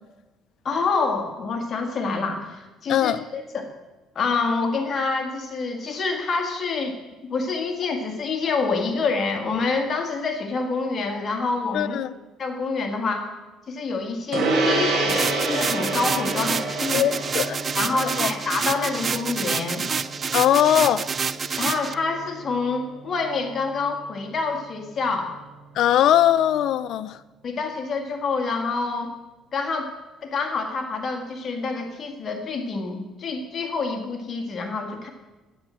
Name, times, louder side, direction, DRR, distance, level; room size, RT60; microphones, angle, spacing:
voice 1, 0.7-3.7 4.2-6.9 7.3-12.0 12.4-13.3 13.7-17.0 17.8-19.8 21.6-25.4 27.4-29.1 29.5-29.9 30.2-35.1, left 4 dB, 35° left, 4 dB, 1.7 m, -27 dB
voice 2, 2.9-3.2 11.7-12.1 16.9-17.6 18.2-18.3 20.3-21.0 25.8-27.2, left 11 dB, 60° left, 14 dB, 0.6 m, -20 dB
Gong, 14.3-24.0, right 2 dB, 55° right, 3.4 m, -29 dB
sound 1, 15.1-21.9, right 6 dB, 30° right, 0.4 m, -28 dB
10.0 x 8.7 x 7.6 m, 1.1 s
cardioid pair, 130°, 0 cm